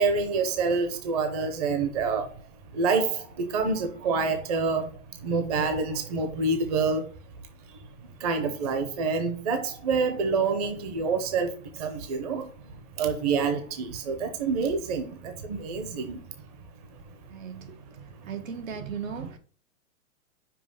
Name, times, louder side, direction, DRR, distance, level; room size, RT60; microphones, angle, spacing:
voice 1, 0.0-2.5 2.7-7.2 7.7-7.9 8.2-16.5 16.9-17.2 17.6-18.4 18.8-19.3, right 4 dB, 30° right, 0.8 m, -28 dB
voice 2, 17.3-17.7 18.2-19.4, right 7 dB, 75° right, 1.5 m, -37 dB
5.9 x 5.1 x 5.3 m
hypercardioid pair, 175°, 40 cm